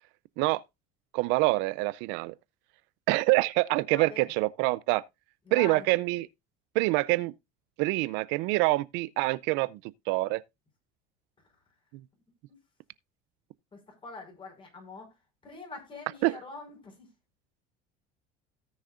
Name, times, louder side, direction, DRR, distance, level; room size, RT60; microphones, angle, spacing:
voice 1, 1.1-2.3 3.1-5.0 5.5-6.3 6.7-7.3 7.8-9.8 10.1-10.4 16.2-16.4, right 21 dB, 70° right, 0.5 m, -26 dB
voice 2, 3.9-4.3 5.5-5.9 12.5-12.6 13.7-15.1 15.4-17.1, left 3 dB, 25° left, 5.4 m, -44 dB
17.5 x 6.5 x 2.5 m
supercardioid pair, 120°, 20 cm